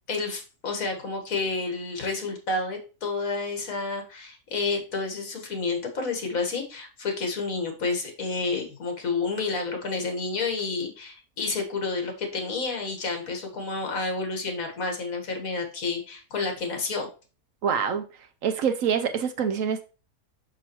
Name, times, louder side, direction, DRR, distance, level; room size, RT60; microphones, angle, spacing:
voice 1, 0.1-17.1, left 3 dB, 65° left, 1.9 m, -30 dB
voice 2, 17.6-18.0 18.4-19.8, right 7 dB, 70° right, 1.0 m, -25 dB
6.0 x 5.9 x 3.0 m
omnidirectional pair, 1.6 m